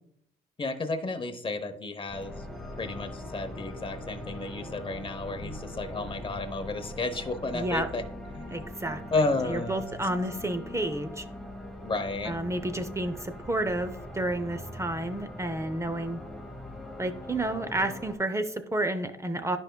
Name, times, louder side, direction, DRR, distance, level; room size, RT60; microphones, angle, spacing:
voice 1, 0.6-2.4 2.8-8.0 8.3-8.5 9.1-9.9 11.8-12.3, left 3 dB, 25° left, 7 dB, 0.9 m, -32 dB
sound 1, 2.1-18.1, left 1 dB, ahead, 1.1 m, -41 dB
voice 2, 7.5-7.9 8.5-11.2 12.2-16.2 17.0-19.6, right 1 dB, 15° right, 9 dB, 0.6 m, -31 dB
10.5 x 5.2 x 2.2 m, 0.71 s
cardioid pair, 90°, 20 cm